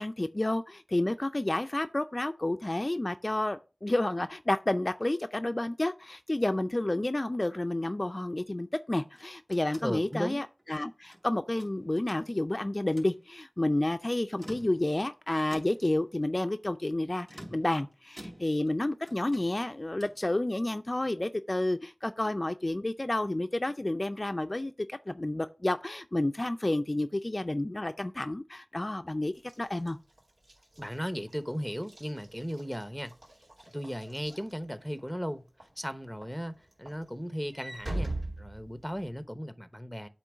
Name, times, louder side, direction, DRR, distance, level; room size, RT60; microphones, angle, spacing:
voice 1, 0.0-30.0, left 1 dB, 40° left, 0.4 m, -30 dB
sound 1, 9.0-11.2 11.6-12.5 12.8-13.2 14.2-15.1 15.5-16.0 17.2-18.8 19.1-20.3, right 1 dB, 50° right, 3.1 m, -50 dB
voice 2, 9.8-10.4 30.8-33.1 33.7-35.4 35.8-40.1, equal, ahead, 0.8 m, -36 dB
Walk footsteps / Slam, 29.4-35.1 35.6-35.9 36.2-39.2, right 1 dB, 85° right, 2.2 m, -41 dB
8.3 x 3.1 x 6.2 m
wide cardioid pair, 45°, 0 cm